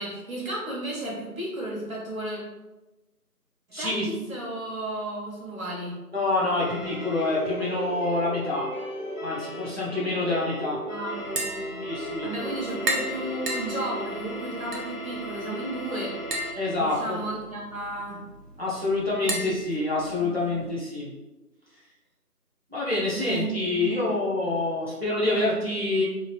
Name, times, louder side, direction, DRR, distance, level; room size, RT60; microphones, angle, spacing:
voice 1, 0.0-2.4 3.8-5.9 10.9-11.8 12.2-16.1 16.8-18.2 19.2-19.5 20.2-20.7 23.1-24.2, right 1 dB, 60° right, -4 dB, 1.2 m, -34 dB
voice 2, 3.7-4.1 6.1-8.7 9.2-10.8 11.8-12.3 16.6-17.2 18.6-21.1 22.7-26.0, left 2 dB, 40° right, -7 dB, 0.7 m, -27 dB
sound 1, 6.6-16.5, equal, 50° left, 0.7 m, -35 dB
Tap, 11.2-20.7, right 1 dB, 80° right, 0.8 m, -36 dB
2.9 x 2.5 x 2.8 m, 1.1 s
figure-of-eight pair, 170°, 47 cm